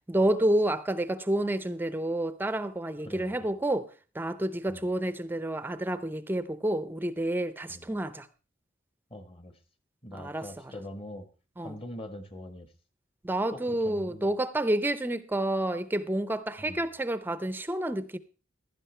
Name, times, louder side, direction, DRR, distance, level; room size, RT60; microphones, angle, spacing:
voice 1, 0.1-3.9 4.1-8.3 10.1-10.5 11.6-11.8 13.2-18.2, right 1 dB, 10° right, 0.5 m, -29 dB
voice 2, 3.0-3.5 4.7-4.9 7.7-7.9 9.1-9.5 10.0-11.3 11.6-12.7 13.5-14.3 16.6-16.9, left 1 dB, 30° left, 1.2 m, -43 dB
15.5 x 11.5 x 3.2 m
head